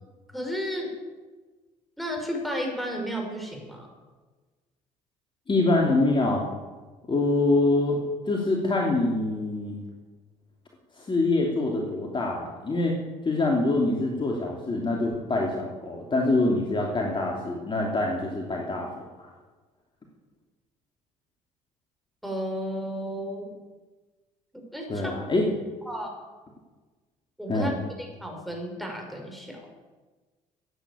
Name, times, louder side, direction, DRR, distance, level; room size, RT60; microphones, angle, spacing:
voice 1, 0.3-0.9 2.0-3.9 22.2-23.5 24.5-25.1 25.9-26.1 27.4-27.7 28.0-29.7, equal, ahead, 1 dB, 5.4 m, -33 dB
voice 2, 5.5-6.4 7.1-8.0 8.3-9.8 11.0-12.9 13.2-18.9 19.2-19.3 24.9-25.5 27.5-27.7, left 2 dB, 30° left, -1 dB, 2.8 m, -25 dB
14.5 x 9.3 x 8.5 m, 1.3 s
supercardioid pair, 70°, 16 cm